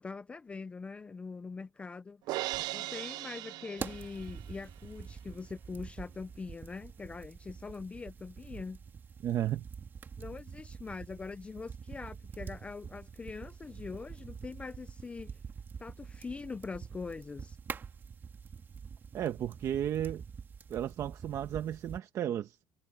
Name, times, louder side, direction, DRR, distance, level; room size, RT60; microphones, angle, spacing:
voice 1, 0.0-2.2 2.7-8.8 10.2-15.4 15.8-17.6, left 4 dB, 15° left, 0.4 m, -43 dB
Crash cymbal, 2.3-4.6, right 18 dB, 70° right, 0.4 m, -38 dB
sound 1, 3.8-22.0, right 6 dB, 30° right, 2.2 m, -46 dB
voice 2, 9.2-9.6 19.1-20.2 20.7-22.6, right 11 dB, 50° right, 1.1 m, -33 dB
cardioid pair, 155°, 7 cm